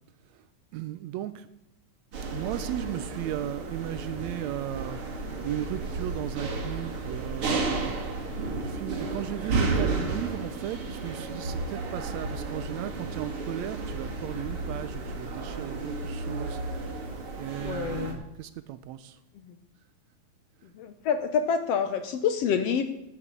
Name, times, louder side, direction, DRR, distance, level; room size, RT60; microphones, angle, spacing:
voice 1, 0.7-1.5 2.3-5.0 5.4-7.9 8.6-16.6 17.4-19.2, right 13 dB, 80° right, 14 dB, 1.7 m, -36 dB
sound 1, 2.1-18.1, right 3 dB, 50° right, 2.7 m, -33 dB
voice 2, 17.6-18.2 19.5-19.6 20.7-22.8, left 6 dB, 70° left, 9 dB, 1.7 m, -27 dB
11.5 x 7.2 x 8.2 m, 0.90 s
omnidirectional pair, 3.4 m